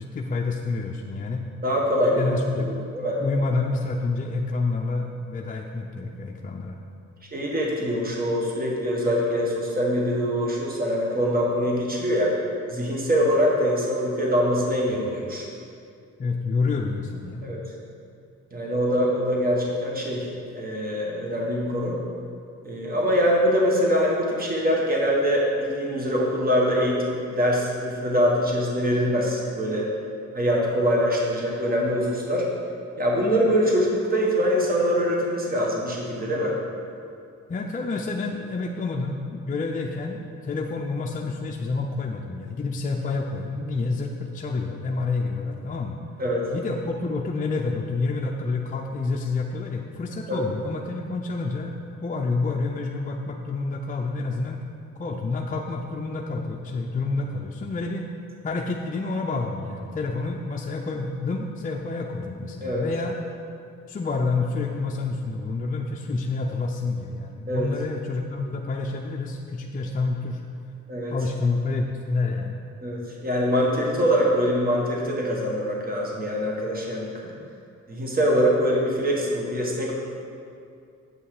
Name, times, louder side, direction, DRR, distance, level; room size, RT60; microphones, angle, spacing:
voice 1, 0.0-1.4 2.1-2.8 3.2-6.8 15.1-15.2 16.2-17.6 37.5-46.0 46.5-51.7 52.0-54.6 55.0-58.1 58.4-63.2 63.9-70.4 71.1-72.6, left 3 dB, 25° left, 0 dB, 0.5 m, -28 dB
voice 2, 1.6-2.3 2.6-3.2 7.3-12.3 12.7-15.5 17.4-17.6 18.5-22.0 22.6-29.9 30.3-32.5 33.0-36.6 46.2-46.4 50.3-50.5 62.6-62.9 67.5-67.7 70.9-71.1 72.8-77.3 77.9-79.9, equal, 30° right, -2 dB, 1.6 m, -23 dB
7.9 x 5.6 x 4.9 m, 2.4 s
cardioid pair, 90°, 30 cm